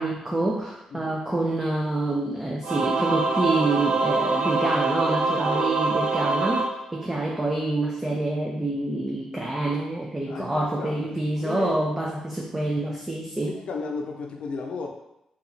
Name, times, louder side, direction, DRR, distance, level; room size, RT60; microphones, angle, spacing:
voice 1, 0.0-13.6, right 2 dB, 15° right, -1 dB, 0.4 m, -27 dB
Singing / Musical instrument, 2.6-7.5, right 3 dB, 80° right, 0.4 m, -25 dB
voice 2, 10.3-11.8 13.5-14.9, left 4 dB, 70° left, 2 dB, 0.5 m, -34 dB
2.9 x 2.4 x 3.9 m, 0.86 s
cardioid pair, 105°, 2 cm